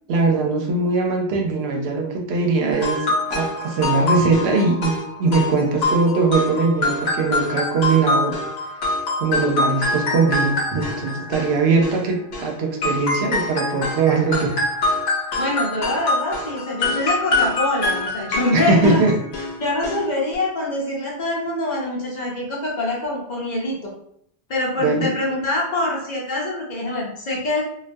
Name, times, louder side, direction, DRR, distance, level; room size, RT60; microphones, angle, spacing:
voice 1, 0.1-8.4 9.2-14.5 18.5-19.2 24.8-25.1, right 3 dB, 85° right, 2 dB, 0.8 m, -21 dB
sound 1, 2.7-12.5 12.8-19.5 19.8-20.0 20.3-20.4, left 2 dB, 85° left, 0.9 m, -25 dB
voice 2, 15.3-19.0 19.6-23.9 24.5-27.6, left 2 dB, 50° left, -4 dB, 0.7 m, -24 dB
2.3 x 2.2 x 2.5 m, 0.70 s
omnidirectional pair, 1.0 m